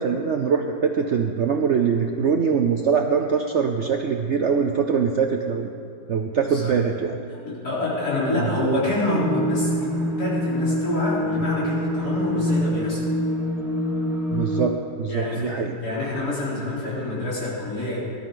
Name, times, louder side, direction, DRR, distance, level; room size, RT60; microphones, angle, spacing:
voice 1, 0.0-5.7 6.1-7.2 14.3-15.8, right 6 dB, 60° right, 4 dB, 0.7 m, -23 dB
voice 2, 7.4-13.1 15.1-18.1, left 2 dB, 65° left, -8 dB, 4.5 m, -27 dB
sound 1, 9.2-14.7, equal, ahead, 1.4 m, -25 dB
19.5 x 12.5 x 3.9 m, 2.6 s
omnidirectional pair, 1.8 m